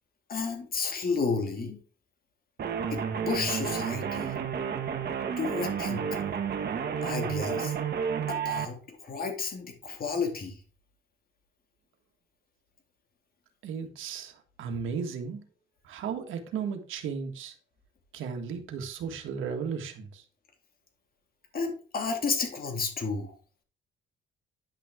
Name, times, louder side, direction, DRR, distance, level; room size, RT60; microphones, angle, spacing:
voice 1, 0.3-1.8 2.9-3.0 3.3-4.3 5.4-6.2 7.0-7.7 8.3-10.6 21.5-23.3, left 4 dB, 50° left, 4 dB, 2.5 m, -32 dB
sound 1, 2.6-8.7, right 7 dB, 55° right, 1.5 m, -31 dB
voice 2, 13.6-14.3 14.6-15.4 15.9-17.5 18.1-20.2, right 6 dB, 80° right, 4 dB, 1.7 m, -35 dB
10.0 x 6.1 x 3.7 m, 0.41 s
cardioid pair, 90°, 20 cm